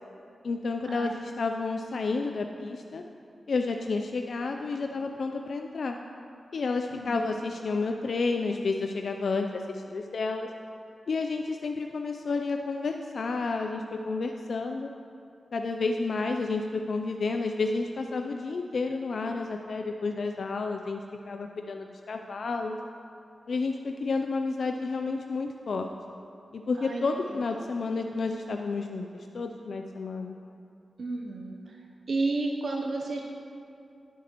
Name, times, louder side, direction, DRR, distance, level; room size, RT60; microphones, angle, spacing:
voice 1, 0.4-3.0 3.5-6.0 6.5-10.5 11.1-14.9 15.5-21.0 21.3-22.8 23.5-25.9 26.5-30.4, left 3 dB, 70° left, 4 dB, 0.4 m, -30 dB
voice 2, 6.9-7.2 26.8-27.0 27.3-27.4 31.0-31.8 32.1-33.2, right 3 dB, 65° right, 0 dB, 0.8 m, -32 dB
16.0 x 8.2 x 3.0 m, 2.6 s
wide cardioid pair, 80°, 0 cm